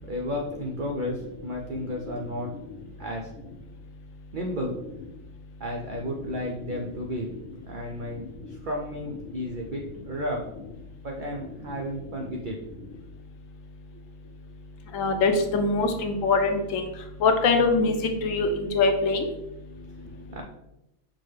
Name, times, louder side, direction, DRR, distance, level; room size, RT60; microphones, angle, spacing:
voice 1, 0.1-2.5 3.0-3.3 4.3-4.8 5.6-7.3 7.7-10.4 11.0-12.6 19.8-20.4, equal, 80° right, 0 dB, 0.4 m, -33 dB
voice 2, 14.9-16.9 17.2-19.3, left 3 dB, 75° left, 5 dB, 1.0 m, -23 dB
6.0 x 2.2 x 3.2 m, 0.90 s
omnidirectional pair, 1.5 m